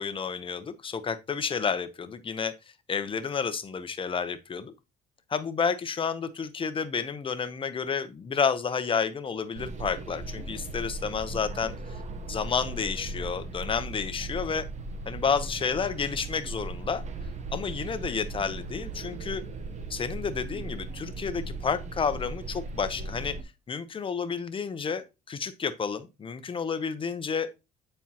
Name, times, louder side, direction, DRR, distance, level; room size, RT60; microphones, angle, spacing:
voice 1, 0.0-2.5 2.9-4.7 5.3-11.7 12.3-14.6 15.1-17.0 17.5-19.4 19.9-23.4 23.7-27.5, left 6 dB, 30° left, 0.8 m, -30 dB
sound 1, 9.5-23.4, right 2 dB, 45° right, 0.9 m, -38 dB
9.4 x 4.4 x 2.9 m
cardioid pair, 110°, 17 cm